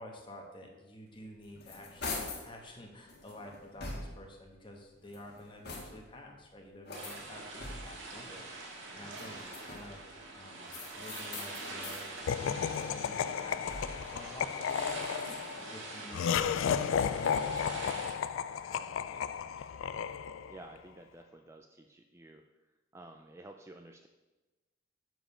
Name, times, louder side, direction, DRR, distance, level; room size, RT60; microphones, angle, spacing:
voice 1, 0.0-10.0 10.3-12.1 12.4-15.0 15.6-16.2 16.7-18.3 18.6-19.7, left 1 dB, 25° left, 1 dB, 1.2 m, -50 dB
sound 1, 1.2-2.5 3.1-4.4 5.0-6.2 6.8-8.1 9.0-10.0 10.7-12.1 12.5-14.2, left 3 dB, 55° left, 1.5 m, -44 dB
sound 2, 6.9-18.2, right 2 dB, 75° right, 1.6 m, -44 dB
Laughter, 12.3-20.6, left 7 dB, 80° left, 0.3 m, -33 dB
voice 2, 20.5-22.4 22.9-24.1, right 2 dB, 15° right, 4 dB, 0.3 m, -52 dB
7.5 x 5.1 x 5.5 m, 1.1 s
head